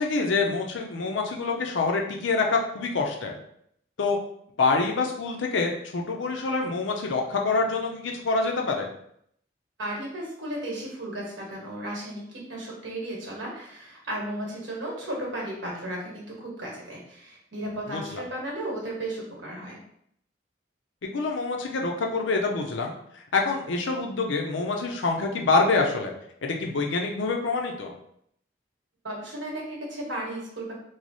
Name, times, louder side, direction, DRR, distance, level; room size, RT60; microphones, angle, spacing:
voice 1, 0.0-3.3 4.0-4.2 4.6-8.9 17.9-18.2 21.0-26.1 26.4-27.9, left 3 dB, 90° left, 1 dB, 0.6 m, -26 dB
voice 2, 9.8-19.8 29.0-30.7, right 1 dB, 90° right, -3 dB, 1.2 m, -34 dB
3.1 x 2.0 x 3.9 m, 0.70 s
head